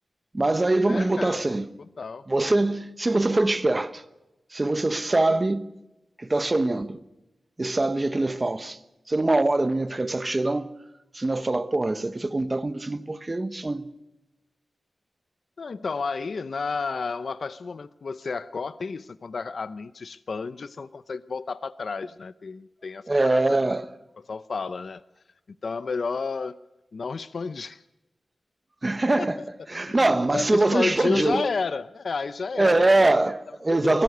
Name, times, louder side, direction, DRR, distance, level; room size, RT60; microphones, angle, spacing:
voice 1, 0.3-1.7 2.3-4.0 4.5-5.7 6.2-7.0 7.6-8.8 9.1-10.7 11.1-13.9 23.1-23.9 28.8-29.4 29.7-31.5 32.6-34.0, right 2 dB, 25° right, 1.0 m, -23 dB
voice 2, 0.9-1.6 2.0-2.2 15.6-23.6 24.3-25.0 25.6-26.6 26.9-27.8 29.2-29.4 29.7-30.0 30.3-33.0 33.7-34.0, left 4 dB, 55° left, 0.6 m, -31 dB
23.5 x 17.5 x 6.7 m
wide cardioid pair, 145°, 0 cm